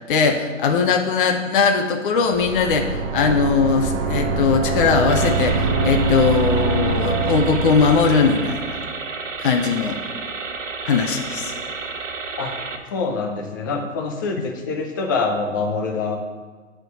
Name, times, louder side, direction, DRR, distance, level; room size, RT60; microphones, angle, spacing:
voice 1, 0.1-8.8 9.4-10.0 10.8-11.5, left 5 dB, 45° left, 4 dB, 0.8 m, -20 dB
sound 1, 2.2-8.7, right 4 dB, 45° right, 1.1 m, -23 dB
sound 2, 5.1-12.8, right 4 dB, 75° right, 1.0 m, -31 dB
voice 2, 12.9-16.2, left 4 dB, 15° left, 3 dB, 0.4 m, -25 dB
8.9 x 3.8 x 6.1 m, 1.5 s
figure-of-eight pair, 120°, 39 cm